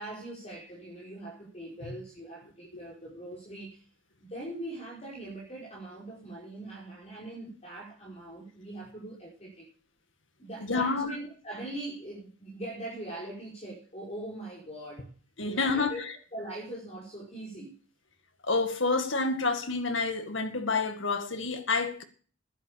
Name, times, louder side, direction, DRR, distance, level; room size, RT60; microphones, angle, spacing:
voice 1, 0.0-3.8 4.3-9.7 10.4-15.1 15.4-16.0 16.3-17.7, right 1 dB, 30° left, 5.4 m, -41 dB
voice 2, 10.6-11.2 15.4-16.1 18.4-22.0, left 3 dB, 60° left, 1.9 m, -28 dB
11.0 x 10.5 x 6.8 m
head